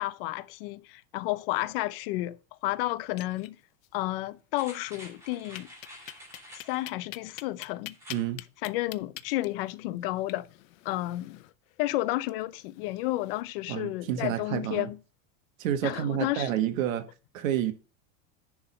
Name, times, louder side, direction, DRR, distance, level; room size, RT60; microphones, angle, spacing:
voice 1, 0.0-3.6 3.9-5.7 6.5-8.0 8.6-10.5 10.8-11.4 11.8-15.0 15.8-16.5, left 17 dB, 45° left, 0.5 m, -31 dB
sound 1, 3.0-3.9 4.2-4.3 4.6-4.7 5.6-13.4, left 17 dB, 90° left, 0.7 m, -46 dB
sound 2, 4.5-6.9 7.9-8.3 8.7-8.8, left 1 dB, 5° right, 2.0 m, -49 dB
voice 2, 8.1-8.4 13.7-14.9 15.6-17.1 17.3-17.7, right 10 dB, 85° right, 1.4 m, -29 dB
10.5 x 3.7 x 5.5 m
supercardioid pair, 180°, 39 cm